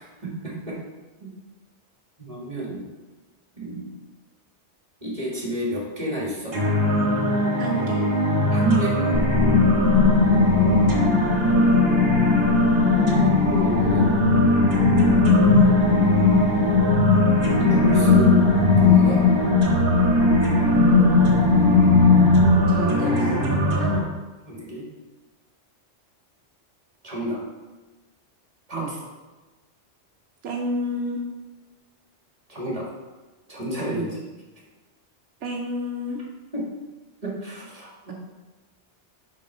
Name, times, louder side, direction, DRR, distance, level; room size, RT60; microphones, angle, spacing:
voice 1, 0.2-0.8 1.2-1.3 2.2-2.8 3.6-3.9 5.0-6.6 8.5-9.0 13.5-14.2 15.7-16.5 17.7-19.2 24.5-24.9 27.0-27.4 28.7-29.0 32.5-32.8 33.5-34.2 36.5-36.6 37.2-38.1, right 2 dB, 30° right, -4 dB, 1.9 m, -30 dB
sound 1, 6.5-24.0, equal, 60° right, 1.5 m, -22 dB
voice 2, 7.6-8.0 20.9-23.9 28.7-28.9 30.4-31.2 33.9-34.1 35.4-36.2 38.1-38.2, right 1 dB, 80° right, 0 dB, 1.0 m, -31 dB
sound 2, 9.1-22.8, left 5 dB, 85° left, 1.1 m, -19 dB
5.3 x 4.3 x 5.4 m, 1.2 s
omnidirectional pair, 1.2 m